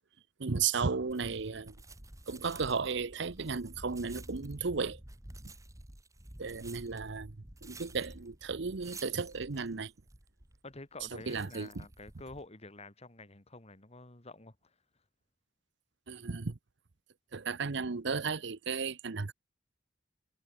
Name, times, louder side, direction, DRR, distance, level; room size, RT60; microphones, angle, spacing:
voice 1, 0.4-1.7 2.3-5.0 5.4-5.5 6.4-7.3 7.6-9.9 11.1-11.8 16.1-16.6 17.3-19.3, right 5 dB, 65° right, 0.8 m, -34 dB
sound 1, 1.1-12.5, right 1 dB, 15° right, 1.9 m, -51 dB
voice 2, 10.6-14.8, left 2 dB, 35° left, 2.6 m, -49 dB
head